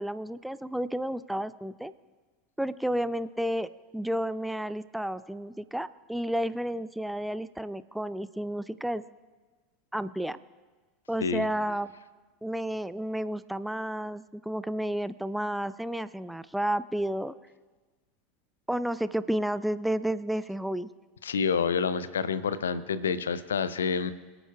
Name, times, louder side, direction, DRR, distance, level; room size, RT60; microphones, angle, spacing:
voice 1, 0.0-1.9 2.6-9.0 9.9-10.4 11.1-11.9 12.4-17.3 18.7-20.9, right 1 dB, 5° right, 15 dB, 0.3 m, -31 dB
voice 2, 21.2-24.1, left 6 dB, 75° left, 16 dB, 0.5 m, -28 dB
23.5 x 8.9 x 2.3 m, 1.3 s
figure-of-eight pair, 80°, 0 cm